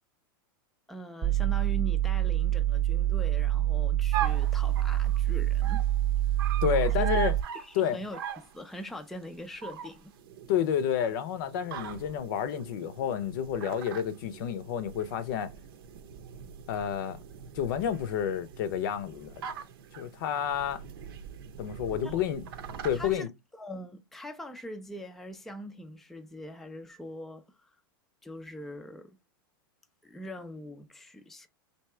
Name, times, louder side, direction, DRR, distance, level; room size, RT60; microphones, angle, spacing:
voice 1, 0.9-5.9 7.0-7.1 7.5-10.1 22.0-22.2 22.9-23.3 23.6-27.8 28.2-29.2 30.0-31.5, equal, ahead, 0.4 m, -42 dB
sound 1, 1.2-7.4, right 12 dB, 30° right, 0.8 m, -26 dB
sound 2, 4.1-23.2, right 9 dB, 75° right, 0.8 m, -41 dB
voice 2, 6.6-7.3 7.7-8.0 10.5-15.5 16.7-17.2 17.5-19.4 19.9-20.8 21.6-22.4 22.8-23.3, left 9 dB, 60° left, 0.6 m, -30 dB
3.4 x 2.8 x 4.3 m
supercardioid pair, 140°, 12 cm